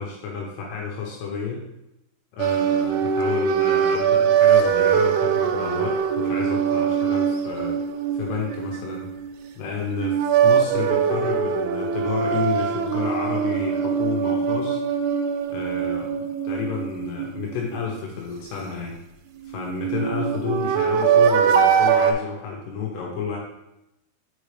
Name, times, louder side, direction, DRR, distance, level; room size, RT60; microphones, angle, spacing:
voice 1, 0.0-1.6 2.3-7.8 8.1-9.1 9.6-14.8 15.5-19.0 19.4-23.4, left 5 dB, 75° left, -1 dB, 2.8 m, -31 dB
sound 1, 2.4-9.5 9.9-17.8 19.5-22.1, right 7 dB, 90° right, 2.3 m, -22 dB
7.2 x 5.4 x 3.3 m, 0.89 s
omnidirectional pair, 5.3 m